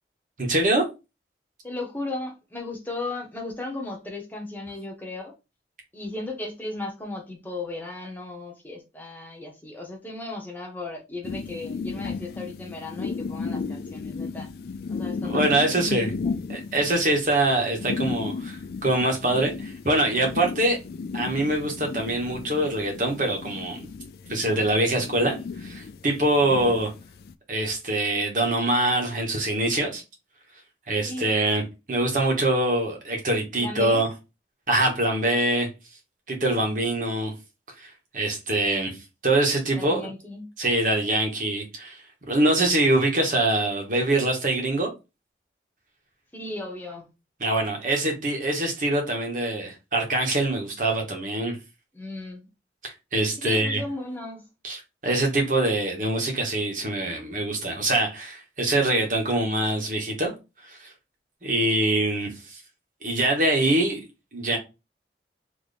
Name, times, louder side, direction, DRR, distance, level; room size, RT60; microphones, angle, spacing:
voice 1, 0.4-0.8 15.2-16.1 16.5-20.8 21.1-23.9 24.3-26.9 27.5-30.0 30.9-31.6 31.9-34.1 34.7-35.7 36.3-37.3 37.8-39.0 39.2-40.0 40.6-42.0 42.3-44.9 47.4-51.6 52.8-53.8 54.6-60.3 60.7-60.9 61.4-62.6 63.0-64.0 64.3-64.6, right 1 dB, 45° right, 1.3 m, -24 dB
voice 2, 1.6-5.3 5.9-14.5 14.9-16.4 31.0-31.4 33.6-34.0 39.7-40.5 46.3-47.1 51.9-52.5 53.4-54.4, left 2 dB, 10° left, 1.0 m, -36 dB
sound 1, 11.2-27.3, left 4 dB, 60° left, 0.3 m, -34 dB
3.4 x 2.9 x 4.1 m
head